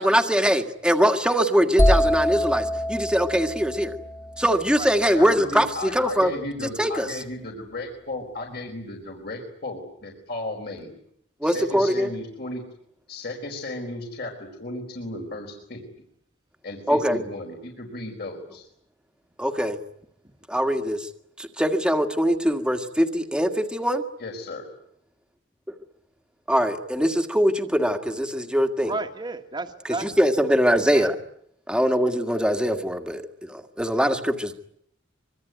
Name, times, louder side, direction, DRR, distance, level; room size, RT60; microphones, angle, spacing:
voice 1, 0.0-4.0 4.4-6.3 6.8-7.1 11.4-12.1 16.9-17.2 19.4-19.8 20.5-21.1 21.4-24.0 26.5-28.9 30.0-31.1 31.7-34.5, equal, 5° right, 5 dB, 1.9 m, -22 dB
sound 1, 1.8-5.6, equal, 15° left, 1.2 m, -25 dB
voice 2, 5.1-11.0 11.4-12.6 13.1-15.8 16.6-18.6 24.2-24.7, left 2 dB, 55° left, 1 dB, 4.6 m, -35 dB
voice 3, 28.8-30.2 30.9-31.1, right 3 dB, 25° right, 4 dB, 1.8 m, -32 dB
25.0 x 23.5 x 9.5 m, 0.71 s
head